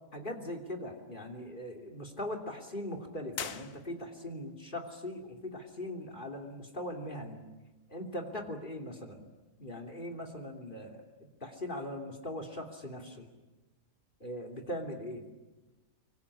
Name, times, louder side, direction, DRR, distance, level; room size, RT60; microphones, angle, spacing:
voice 1, 0.1-7.4 7.9-9.2 9.6-11.1 11.4-13.3 14.2-15.3, left 1 dB, 30° left, 3 dB, 3.1 m, -40 dB
sound 1, 3.3-4.4, left 7 dB, 55° left, 1.5 m, -42 dB
25.0 x 24.0 x 10.0 m, 1.1 s
omnidirectional pair, 1.8 m